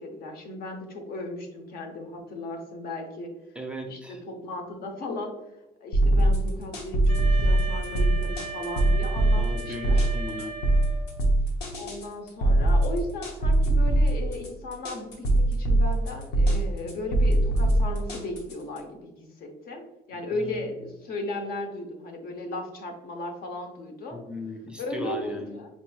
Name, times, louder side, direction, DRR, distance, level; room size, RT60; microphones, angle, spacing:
voice 1, 0.0-3.3 3.9-5.3 5.8-10.0 11.8-19.8 20.1-24.2 24.8-25.7, left 2 dB, 60° left, 4 dB, 0.7 m, -36 dB
voice 2, 3.6-4.2 9.3-10.6 20.1-20.6 24.1-25.6, left 1 dB, 5° right, 2 dB, 0.4 m, -37 dB
sound 1, 5.9-18.8, right 1 dB, 90° left, 0.8 m, -22 dB
Wind instrument woodwind instrument, 7.1-11.3, right 4 dB, 40° left, 1.0 m, -38 dB
4.3 x 2.9 x 2.3 m, 1.0 s
cardioid pair, 110°, 17 cm